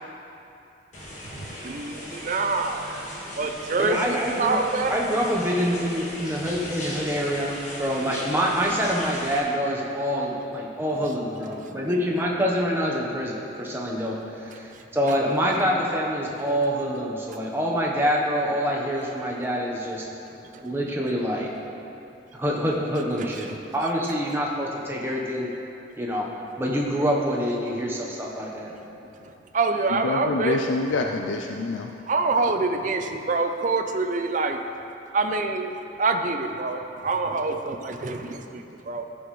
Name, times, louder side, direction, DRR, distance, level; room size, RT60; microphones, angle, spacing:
sound 1, 0.9-9.4, left 1 dB, 40° left, 1.7 m, -38 dB
voice 1, 1.3-3.0 3.4-5.0 20.5-20.6 23.2-23.6 29.5-30.6 32.1-34.6 35.1-39.0, right 3 dB, 40° right, 5 dB, 0.5 m, -26 dB
voice 2, 3.8-4.6 4.9-20.0 20.6-21.5 22.4-25.5 26.0-26.3 26.6-28.7, equal, 10° right, -3 dB, 1.0 m, -26 dB
voice 3, 29.9-31.9, left 3 dB, 80° left, 3 dB, 0.4 m, -26 dB
14.5 x 6.2 x 3.2 m, 2.8 s
head